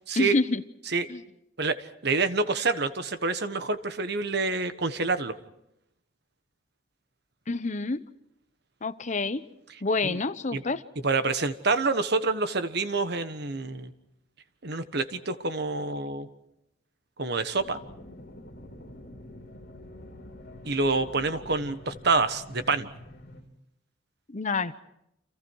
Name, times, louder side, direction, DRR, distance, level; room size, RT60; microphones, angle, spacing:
voice 1, 0.2-0.6 1.1-1.2 7.5-8.0 8.8-9.4 9.8-10.8 24.3-24.8, left 3 dB, 40° left, 13 dB, 0.9 m, -27 dB
voice 2, 1.6-5.4 10.0-10.2 10.5-10.6 11.0-13.9 14.6-16.3 17.2-17.8 20.6-22.9, right 3 dB, 60° right, 11 dB, 1.4 m, -27 dB
sound 1, 17.6-23.4, left 1 dB, 60° left, 4.0 m, -46 dB
30.0 x 27.5 x 4.8 m, 0.80 s
head